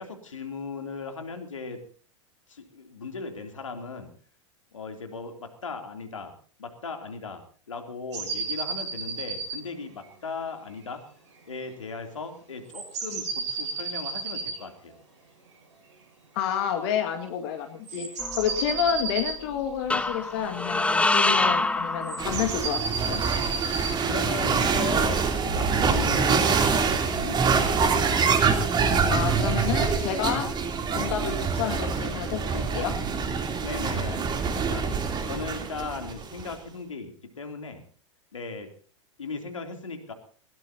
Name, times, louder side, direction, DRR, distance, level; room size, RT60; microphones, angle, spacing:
voice 1, 0.0-1.8 2.5-4.1 4.7-6.3 6.6-7.4 7.7-11.0 11.5-14.9 24.1-26.6 26.9-28.3 33.6-34.9 35.2-37.8 38.3-38.7 39.2-40.1, left 4 dB, 80° left, 6 dB, 3.3 m, -37 dB
sound 1, 8.1-9.6 10.0-10.1 11.6-11.7 12.7-14.6 17.9-19.4 20.6-21.6 22.0-24.0, right 5 dB, 65° right, 6.7 m, -32 dB
voice 2, 16.3-18.1 18.4-23.2 29.1-30.5 30.9-33.0, left 9 dB, 55° left, 5 dB, 2.2 m, -29 dB
sound 2, 18.2-19.0 19.9-22.8, left 2 dB, 5° left, 1.2 m, -26 dB
sound 3, 22.2-36.5, right 5 dB, 25° right, 3.4 m, -25 dB
21.0 x 18.0 x 2.9 m, 0.43 s
figure-of-eight pair, 90°, 16 cm